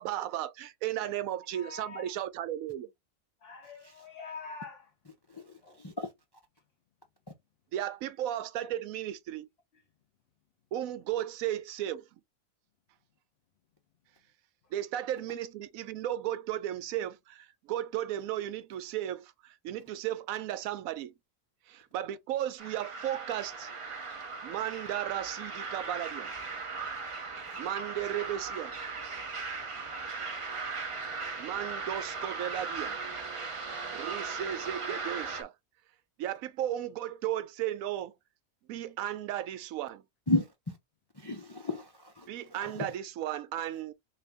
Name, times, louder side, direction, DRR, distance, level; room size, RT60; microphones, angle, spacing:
voice 1, 0.0-2.9 7.7-9.5 10.7-12.0 14.7-21.1 21.7-23.7 24.4-26.3 27.6-28.7 31.4-33.0 33.9-35.5 36.2-38.1 38.7-40.0 42.3-43.9, right 12 dB, 85° right, 1.0 m, -35 dB
voice 2, 1.5-2.1 3.4-4.9 5.6-5.8, left 5 dB, 50° left, 1.0 m, -45 dB
voice 3, 5.8-6.1 40.3-40.5 41.2-42.3 42.6-42.9, left 2 dB, 35° left, 0.4 m, -32 dB
sound 1, 22.6-35.4, right 4 dB, 45° right, 0.4 m, -38 dB
3.9 x 2.6 x 3.4 m
omnidirectional pair, 1.4 m